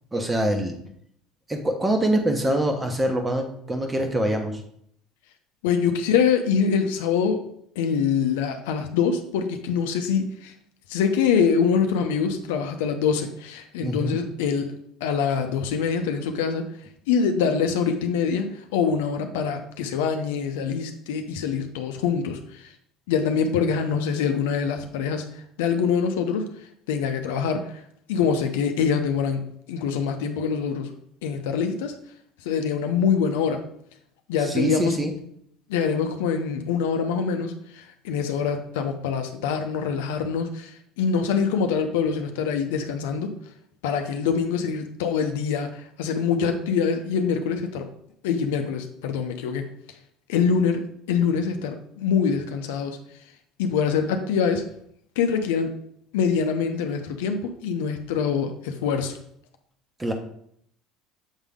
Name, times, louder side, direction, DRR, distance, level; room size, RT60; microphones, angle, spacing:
voice 1, 0.1-0.8 1.5-4.6 13.8-14.2 34.4-35.1 60.0-60.1, right 1 dB, 20° right, 4 dB, 1.1 m, -24 dB
voice 2, 5.6-7.4 7.8-10.5 10.9-14.7 15.0-16.7 17.1-22.7 23.1-25.2 25.6-26.5 26.9-27.8 28.1-30.9 31.2-32.0 32.4-33.6 34.3-35.0 35.7-43.3 43.8-47.9 48.2-49.7 50.3-50.8 51.1-53.0 53.6-54.6 55.2-55.7 56.1-59.2, left 6 dB, 85° left, 6 dB, 0.6 m, -24 dB
7.2 x 3.6 x 3.6 m, 0.69 s
hypercardioid pair, 80°, 0 cm